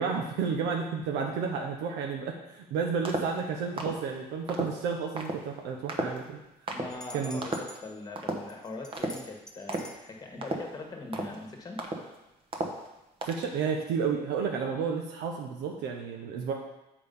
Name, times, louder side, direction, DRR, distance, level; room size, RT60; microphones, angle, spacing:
voice 1, 0.0-6.4 7.1-7.4 13.2-16.5, right 6 dB, 90° right, 1 dB, 0.8 m, -31 dB
sound 1, 3.0-3.4 3.8-4.0 4.5-4.7 5.2-5.4 5.9-6.3 6.7-6.9 7.4-7.8 8.2-8.5 8.9-9.2 9.7-10.0 10.4-10.8 11.1-11.4 11.8-12.2 12.5-12.9 13.2-13.5, right 2 dB, 35° right, 1.1 m, -33 dB
voice 2, 6.7-11.8, left 2 dB, 20° left, 2 dB, 1.5 m, -41 dB
sound 2, 6.9-7.8 8.5-10.0, left 1 dB, 5° left, 0.8 m, -46 dB
6.9 x 5.0 x 5.4 m, 0.95 s
cardioid pair, 110°, 17 cm